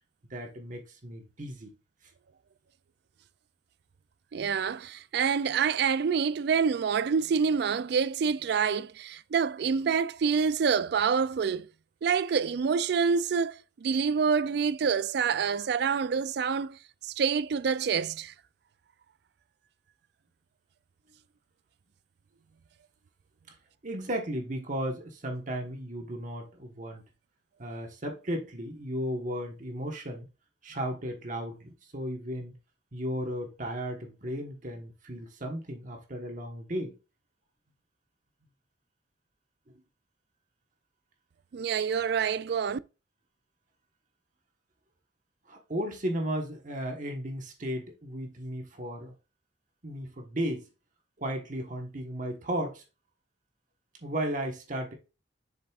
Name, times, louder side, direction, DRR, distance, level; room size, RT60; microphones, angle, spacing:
voice 1, 0.3-1.7 23.5-23.6 23.8-27.0 27.6-30.3 30.6-32.5 32.9-36.9 45.5-49.1 49.8-50.7 51.2-52.8 54.0-54.9, equal, 45° right, 1.3 m, -35 dB
voice 2, 4.3-11.7 12.0-16.8 17.0-18.3 41.5-42.8, right 6 dB, 60° right, 0.3 m, -27 dB
7.6 x 6.8 x 2.4 m
head